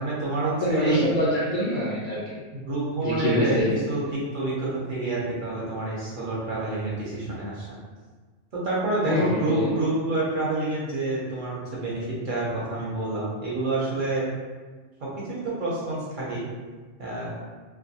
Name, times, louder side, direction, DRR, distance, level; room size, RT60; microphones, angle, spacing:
voice 1, 0.0-1.1 2.5-7.7 8.5-14.3 15.0-16.5 17.0-17.4, right 2 dB, 55° right, -6 dB, 0.6 m, -28 dB
voice 2, 0.5-2.4 3.0-3.8 9.0-9.7, left 1 dB, 85° left, -7 dB, 0.3 m, -25 dB
2.4 x 2.2 x 2.6 m, 1.4 s
omnidirectional pair, 1.3 m